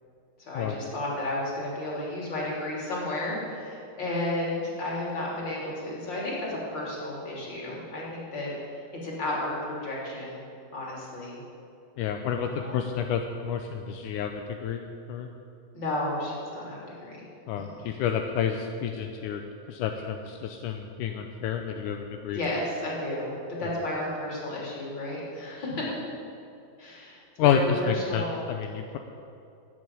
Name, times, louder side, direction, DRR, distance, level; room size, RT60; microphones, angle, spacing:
voice 1, 0.4-8.5 9.0-10.4 10.7-11.4 12.4-12.8 15.7-17.2 17.6-17.9 22.3-25.8 26.8-28.4, left 1 dB, 30° left, -4 dB, 3.6 m, -32 dB
voice 2, 12.0-15.3 17.5-19.4 19.7-22.4 23.6-23.7 27.4-29.0, left 8 dB, 80° left, 5 dB, 1.9 m, -29 dB
13.5 x 7.9 x 9.8 m, 2.6 s
omnidirectional pair, 4.3 m